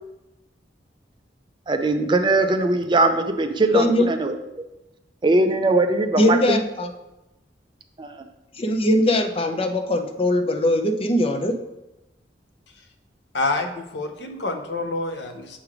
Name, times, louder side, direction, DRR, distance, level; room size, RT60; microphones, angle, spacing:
voice 1, 1.7-4.7 5.2-6.6 8.0-8.1, right 2 dB, 25° right, 7 dB, 0.4 m, -21 dB
voice 2, 3.7-4.1 6.2-6.9 8.6-11.6, left 1 dB, 35° left, 5 dB, 0.6 m, -21 dB
voice 3, 13.3-15.6, left 2 dB, 75° left, 6 dB, 0.7 m, -27 dB
6.9 x 3.3 x 4.8 m, 0.95 s
head